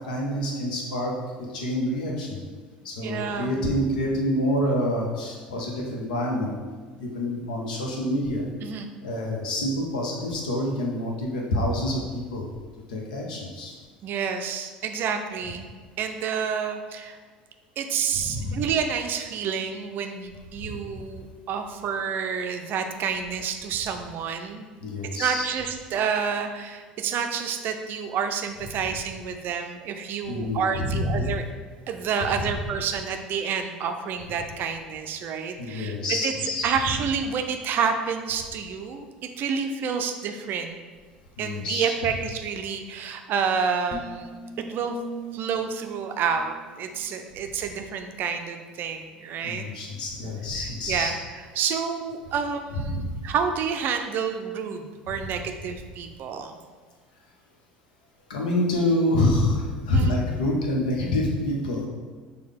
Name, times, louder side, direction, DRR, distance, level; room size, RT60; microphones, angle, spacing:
voice 1, 0.0-2.4 2.8-6.5 7.0-8.5 9.0-12.5 12.9-13.7 18.1-18.6 20.6-20.8 24.8-25.4 30.3-31.3 32.4-32.5 35.6-36.7 41.4-41.9 49.4-51.1 52.7-53.2 55.2-55.3 58.3-61.9, left 1 dB, 70° left, -1 dB, 0.8 m, -27 dB
voice 2, 3.0-3.6 8.6-8.9 14.0-15.7 16.0-17.2 17.8-24.7 25.1-31.4 31.9-36.0 36.2-36.3 36.6-40.8 41.4-44.4 44.7-44.9 45.3-49.7 50.6-56.6 59.9-60.2, right 6 dB, 45° right, 6 dB, 0.4 m, -29 dB
sound 1, 43.9-47.3, equal, 45° left, 0.6 m, -40 dB
6.3 x 2.3 x 3.5 m, 1.5 s
figure-of-eight pair, 65°, 5 cm